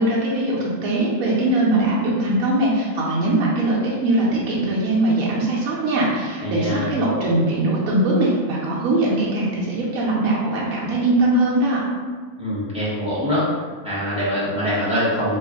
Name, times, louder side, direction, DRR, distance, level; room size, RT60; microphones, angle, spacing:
voice 1, 0.0-11.8, right 1 dB, 75° right, -6 dB, 1.1 m, -21 dB
voice 2, 6.4-6.9 12.4-13.5 13.8-15.4, equal, 5° right, -10 dB, 0.9 m, -23 dB
3.0 x 2.4 x 3.5 m, 1.5 s
omnidirectional pair, 1.5 m